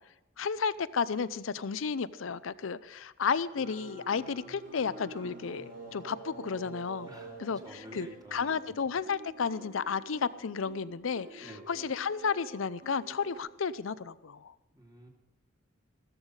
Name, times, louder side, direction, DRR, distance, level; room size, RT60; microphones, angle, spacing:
voice 1, 0.4-7.1 7.4-14.5, left 5 dB, 80° left, 16 dB, 0.6 m, -33 dB
sound 1, 3.5-13.4, right 2 dB, 60° right, 5.9 m, -49 dB
voice 2, 7.6-8.6 11.4-11.6 14.8-15.1, right 1 dB, 20° right, 1 dB, 2.4 m, -49 dB
14.5 x 14.0 x 4.9 m, 0.92 s
head